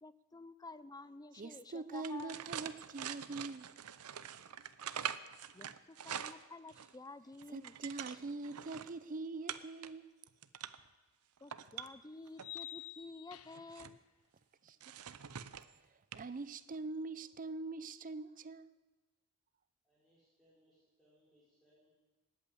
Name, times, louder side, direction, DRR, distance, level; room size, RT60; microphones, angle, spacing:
voice 1, 0.0-2.4 5.5-7.7 8.0-8.2 11.4-14.0, left 3 dB, 15° left, 0.5 m, -51 dB
voice 2, 1.4-3.7 7.5-10.1 14.6-14.8 16.1-18.7, right 3 dB, 40° right, 0.5 m, -43 dB
sound 1, 1.9-7.0 7.3-8.9 9.5-9.9 10.3-10.9 11.4-12.6 13.3-14.0 14.8-15.7 16.1-16.3 16.6-16.8, right 9 dB, 80° right, 0.7 m, -44 dB
sound 2, 10.7-10.8 12.4-13.8, left 14 dB, 80° left, 0.8 m, -48 dB
voice 3, 19.8-21.9, equal, ahead, 5.5 m, -71 dB
19.5 x 8.6 x 8.5 m
head